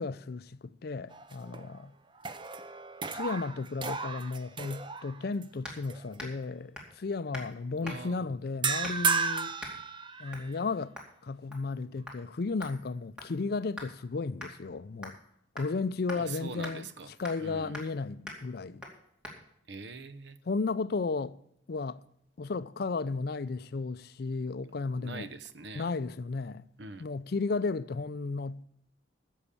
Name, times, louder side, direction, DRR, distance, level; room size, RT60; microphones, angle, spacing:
voice 1, 0.0-1.9 3.1-9.6 10.2-10.9 11.2-15.2 15.6-16.9 17.2-18.8 20.5-21.4 21.7-22.0 22.4-25.3 25.7-26.6 27.0-28.6, left 4 dB, 55° left, 0.5 m, -34 dB
sound 1, 1.1-1.8 2.2-5.4 5.9-6.1 8.6-10.6, right 5 dB, 25° right, 0.6 m, -34 dB
sound 2, 5.6-5.8 6.2-6.4 6.8-7.0 7.3-7.5 7.8-8.2 8.8-9.1 9.6-9.8 10.3-10.5 11.0-11.1 11.5-11.8 12.1-12.2 12.6-13.9 14.4-14.5 15.0-15.3 15.6-15.7 16.1-16.2 16.6-16.8 17.2-17.5 17.7-18.0 18.3-18.4 18.8-19.0 19.2-19.4, left 1 dB, 5° right, 2.4 m, -43 dB
voice 2, 7.8-8.3 16.1-17.1 17.4-17.8 19.7-20.4 25.0-25.9 26.8-27.1, right 4 dB, 65° right, 0.8 m, -43 dB
10.5 x 7.2 x 8.3 m
head